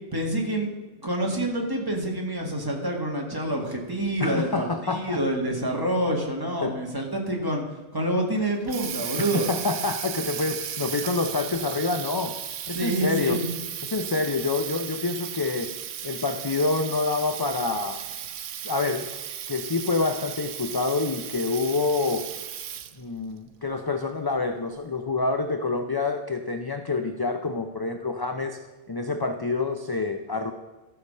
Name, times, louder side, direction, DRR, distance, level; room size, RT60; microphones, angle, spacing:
voice 1, 0.1-0.7 1.0-7.6 7.9-9.5 12.7-13.5, right 1 dB, 20° right, 0 dB, 1.9 m, -27 dB
voice 2, 4.2-5.2 6.6-6.8 9.2-12.4 12.7-13.4 13.8-15.7 16.0-18.0 18.6-19.1 19.5-22.3 23.0-28.6 28.9-30.5, left 3 dB, 30° left, 6 dB, 0.4 m, -27 dB
Water tap faucet, 8.4-23.1, right 10 dB, 85° right, 1.0 m, -35 dB
13.5 x 6.7 x 5.5 m, 1.2 s
omnidirectional pair, 1.3 m